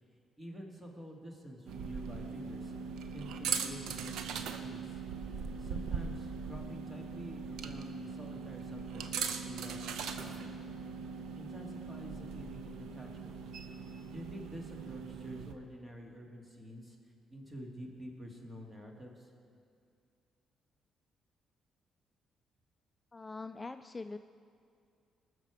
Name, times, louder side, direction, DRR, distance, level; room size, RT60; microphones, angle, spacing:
voice 1, 0.4-2.7 3.1-5.0 5.6-10.5 11.3-13.4 14.1-19.3, equal, 20° right, 1 dB, 2.1 m, -48 dB
sound 1, 1.7-15.5, right 6 dB, 80° right, 0.7 m, -40 dB
voice 2, 23.1-24.2, left 3 dB, 20° left, 9 dB, 0.3 m, -43 dB
20.0 x 6.7 x 4.8 m, 2.4 s
cardioid pair, 90°, 0 cm